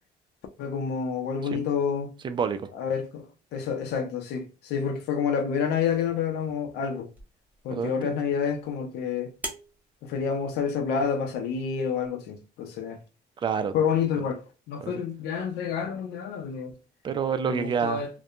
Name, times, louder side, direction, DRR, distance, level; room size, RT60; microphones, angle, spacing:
voice 1, 0.6-2.1 2.7-3.3 3.5-7.1 7.6-9.3 10.0-13.0 13.7-14.4 14.7-16.7 17.4-18.1, left 6 dB, 80° left, 0.6 m, -28 dB
voice 2, 2.2-2.6 7.7-8.1 13.4-13.7 14.8-14.9 17.0-18.0, right 6 dB, 30° right, 0.4 m, -28 dB
sound 1, 7.1-12.1, right 1 dB, 10° right, 0.8 m, -45 dB
2.7 x 2.2 x 2.4 m
cardioid pair, 110°, 17 cm